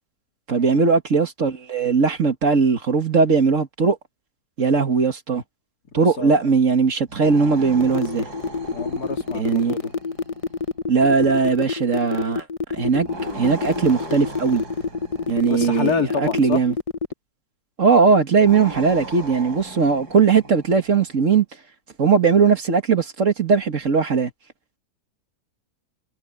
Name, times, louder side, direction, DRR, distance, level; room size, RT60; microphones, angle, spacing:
voice 1, 0.5-4.0 4.6-5.4 5.9-8.3 9.3-9.8 10.9-12.5 12.7-13.1 13.3-14.6 15.3-16.7 17.8-21.5 22.0-24.3, right 5 dB, 55° right, 2.0 m, -19 dB
voice 2, 5.9-6.4 8.7-9.9 15.5-16.6, left 5 dB, 75° left, 3.0 m, -28 dB
sound 1, 7.1-10.6 13.0-16.1 18.3-21.1, right 1 dB, 85° right, 6.3 m, -37 dB
sound 2, 7.8-17.1, left 5 dB, 45° left, 0.4 m, -27 dB
omnidirectional pair, 1.7 m